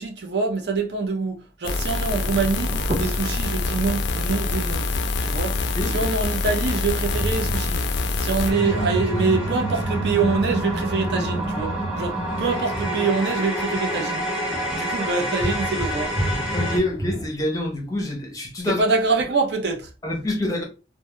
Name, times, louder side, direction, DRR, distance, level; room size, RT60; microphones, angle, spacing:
voice 1, 0.0-4.8 5.2-5.5 5.9-7.8 8.2-14.2 14.7-16.1 18.7-19.9, right 4 dB, 65° right, 0.5 m, -25 dB
sound 1, 1.6-8.5, left 3 dB, 75° left, 0.3 m, -25 dB
sound 2, 1.8-17.3, right 1 dB, 35° right, 0.8 m, -35 dB
voice 2, 5.8-6.1 16.5-18.8 20.0-20.6, left 1 dB, 20° left, 0.6 m, -26 dB
sound 3, 8.4-16.8, right 1 dB, 5° right, 1.0 m, -27 dB
2.2 x 2.1 x 3.0 m
head